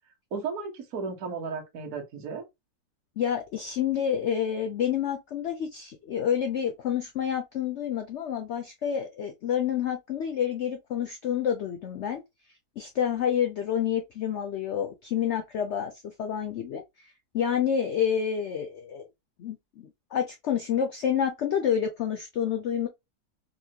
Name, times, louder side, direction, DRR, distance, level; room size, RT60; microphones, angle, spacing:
voice 1, 0.3-2.4, right 5 dB, 55° right, 1.4 m, -34 dB
voice 2, 3.2-12.2 12.8-16.8 17.3-19.0 19.4-22.9, left 8 dB, 75° left, 0.6 m, -28 dB
4.2 x 2.4 x 2.8 m
omnidirectional pair, 1.8 m